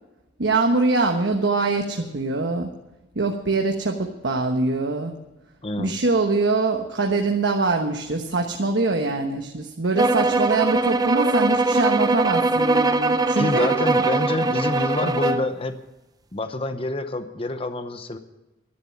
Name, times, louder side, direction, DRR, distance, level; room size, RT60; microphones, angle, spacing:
voice 1, 0.4-2.7 3.1-5.1 5.8-13.7 15.0-15.1, right 3 dB, 75° right, 3 dB, 1.2 m, -23 dB
voice 2, 5.6-5.9 13.4-15.8 16.3-18.2, left 2 dB, 30° left, 9 dB, 0.8 m, -27 dB
sound 1, 10.0-15.5, right 2 dB, 20° right, 0.6 m, -21 dB
12.0 x 10.5 x 8.9 m, 0.99 s
head